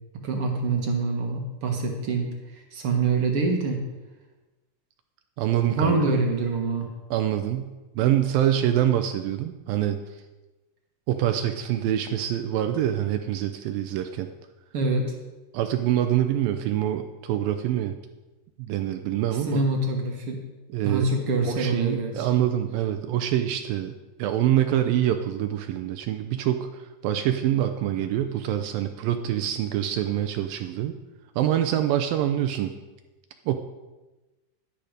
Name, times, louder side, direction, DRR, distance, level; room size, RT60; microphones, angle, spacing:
voice 1, 0.2-2.3 2.7-3.8 5.7-6.9 14.7-15.1 19.5-20.4 20.8-22.4, right 3 dB, 50° right, 2 dB, 1.7 m, -25 dB
voice 2, 5.4-6.2 7.1-10.0 11.1-14.3 15.5-18.0 18.6-19.7 20.7-21.1 21.4-23.9 24.2-30.9 31.4-32.7 33.5-33.6, right 11 dB, 75° right, 7 dB, 2.3 m, -25 dB
12.0 x 11.0 x 5.1 m, 1.1 s
omnidirectional pair, 4.4 m